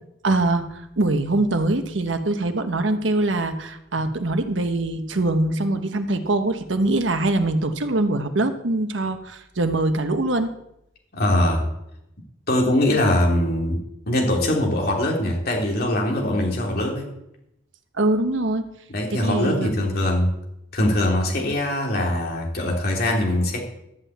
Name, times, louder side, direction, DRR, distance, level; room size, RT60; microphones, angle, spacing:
voice 1, 0.2-10.5 17.9-18.7 19.2-19.7, right 2 dB, 85° right, 8 dB, 1.1 m, -23 dB
voice 2, 11.1-11.7 12.5-13.8 14.1-17.1 18.9-20.3 20.7-23.6, left 1 dB, 55° left, 0 dB, 3.1 m, -22 dB
13.0 x 5.8 x 8.5 m, 0.82 s
head